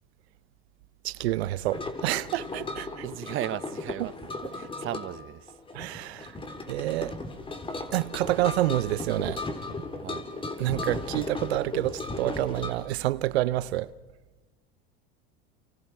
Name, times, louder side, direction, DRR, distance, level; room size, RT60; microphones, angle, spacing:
voice 1, 1.0-2.9 5.7-6.3 6.7-7.1 7.9-9.4 10.6-13.9, right 15 dB, 85° right, 0.8 m, -28 dB
sound 1, 1.7-12.7, left 2 dB, 15° left, 3.5 m, -36 dB
voice 2, 3.0-4.1 4.5-5.6 10.0-10.3, right 14 dB, 40° right, 0.8 m, -35 dB
29.5 x 28.0 x 4.7 m
supercardioid pair, 110°, 31 cm